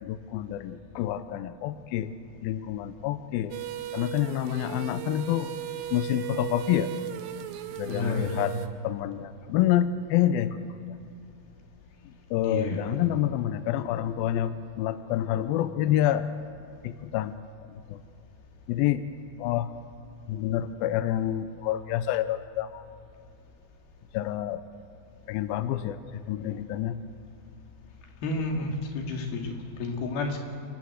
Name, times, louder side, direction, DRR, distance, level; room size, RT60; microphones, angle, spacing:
voice 1, 0.0-2.1 2.4-3.6 3.9-5.5 5.9-6.9 7.8-8.5 8.8-10.7 12.3-16.3 16.8-17.4 17.9-18.0 18.7-19.1 19.4-19.7 20.3-22.8 24.1-24.6 25.3-27.0, left 12 dB, 85° left, 11 dB, 2.2 m, -28 dB
sound 1, 3.5-8.7, right 13 dB, 85° right, 3.0 m, -37 dB
voice 2, 7.9-8.4 12.4-12.9 28.2-30.4, left 3 dB, 65° left, 2 dB, 4.0 m, -31 dB
28.0 x 13.0 x 8.0 m, 2.6 s
omnidirectional pair, 4.9 m